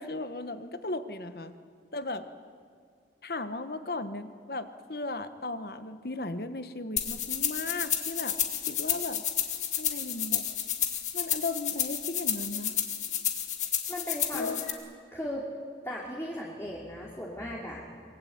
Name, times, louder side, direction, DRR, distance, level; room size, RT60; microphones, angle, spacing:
voice 1, 0.0-1.5 1.9-2.3 3.2-8.4 8.7-9.2 9.8-10.5 11.1-12.7 14.3-14.6, left 2 dB, 55° left, 10 dB, 1.3 m, -36 dB
sound 1, 7.0-14.7, left 10 dB, 40° left, 2.3 m, -31 dB
voice 2, 13.9-14.7 15.1-15.5 15.8-17.8, equal, 15° left, -3 dB, 2.8 m, -37 dB
24.0 x 23.0 x 9.4 m, 2.2 s
head